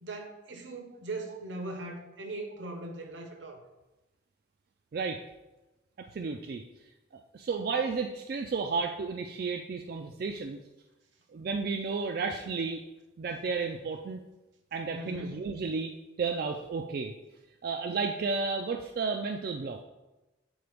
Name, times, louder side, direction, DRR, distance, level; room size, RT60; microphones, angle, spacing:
voice 1, 0.0-3.6 14.9-15.4, right 2 dB, 75° right, 4 dB, 0.8 m, -39 dB
voice 2, 4.9-5.2 6.0-6.6 7.3-10.6 11.3-12.8 13.2-14.2 14.7-17.1 17.6-19.8, right 4 dB, 50° right, 4 dB, 0.3 m, -32 dB
8.0 x 3.8 x 3.4 m, 1.0 s
head